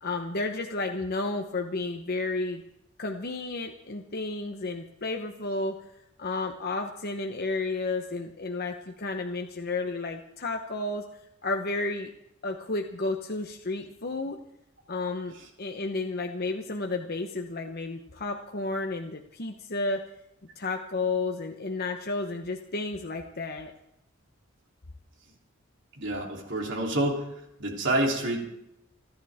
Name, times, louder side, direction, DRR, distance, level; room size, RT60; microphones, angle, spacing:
voice 1, 0.0-2.6 3.0-5.7 6.2-11.0 11.4-12.1 12.4-14.4 14.9-20.0 20.6-23.7, left 3 dB, 50° left, 3 dB, 1.0 m, -32 dB
voice 2, 26.0-27.2 27.6-28.4, right 1 dB, 60° right, 0 dB, 3.3 m, -27 dB
29.5 x 11.0 x 3.6 m, 0.82 s
head